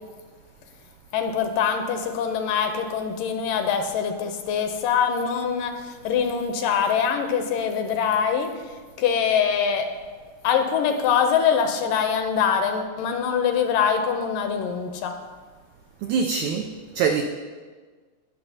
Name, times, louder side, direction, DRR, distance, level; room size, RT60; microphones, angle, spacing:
voice 1, 1.1-8.5 9.0-9.9 10.4-15.2, left 7 dB, 80° left, 6 dB, 2.2 m, -23 dB
voice 2, 16.0-17.2, right 6 dB, 90° right, 4 dB, 1.7 m, -24 dB
18.0 x 6.5 x 2.8 m, 1.5 s
omnidirectional pair, 4.1 m